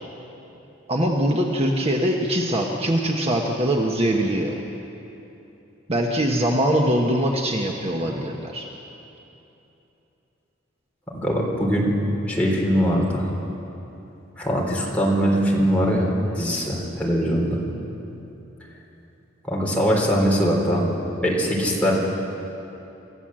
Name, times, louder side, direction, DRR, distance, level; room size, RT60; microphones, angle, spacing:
voice 1, 0.9-4.5 5.9-8.7, right 1 dB, 30° right, 1 dB, 1.3 m, -22 dB
voice 2, 11.1-11.9 12.3-13.3 14.4-17.6 19.4-21.0 21.2-21.9, equal, 5° left, -3 dB, 3.8 m, -21 dB
27.0 x 14.5 x 7.7 m, 3.0 s
head